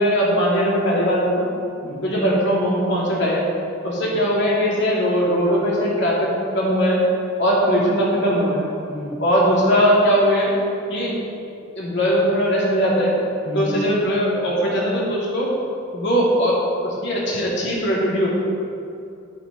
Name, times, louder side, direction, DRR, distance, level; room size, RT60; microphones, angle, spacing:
voice 1, 0.0-1.4 2.0-3.5 3.8-7.0 7.4-8.6 9.2-10.5 10.9-11.1 11.7-13.2 13.5-15.5 15.9-18.3, equal, 55° left, -5 dB, 3.0 m, -20 dB
voice 2, 1.8-2.1 4.0-4.1 8.9-9.2 13.5-13.8, equal, 30° left, -7 dB, 1.5 m, -31 dB
11.5 x 9.6 x 4.3 m, 2.5 s
head